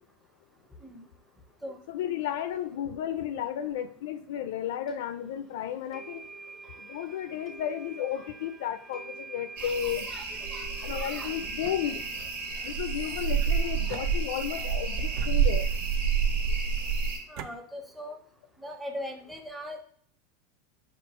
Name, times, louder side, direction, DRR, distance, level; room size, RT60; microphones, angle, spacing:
voice 1, 1.9-6.2 6.8-10.1 10.8-12.0 12.6-15.7, left 10 dB, 75° left, 12 dB, 0.4 m, -33 dB
sound 1, 4.9-5.0 5.9-16.0, right 4 dB, 30° right, 0.9 m, -48 dB
voice 2, 9.6-11.3 13.8-14.0 17.3-18.2 18.6-19.8, equal, 5° right, 3 dB, 0.6 m, -41 dB
sound 2, 9.6-17.2, right 6 dB, 80° right, 1.8 m, -29 dB
sound 3, 11.4-12.4 13.4-14.6 15.1-16.0 16.8-17.5, right 10 dB, 55° right, 0.4 m, -46 dB
4.4 x 2.3 x 4.2 m, 0.62 s
supercardioid pair, 135°, 0 cm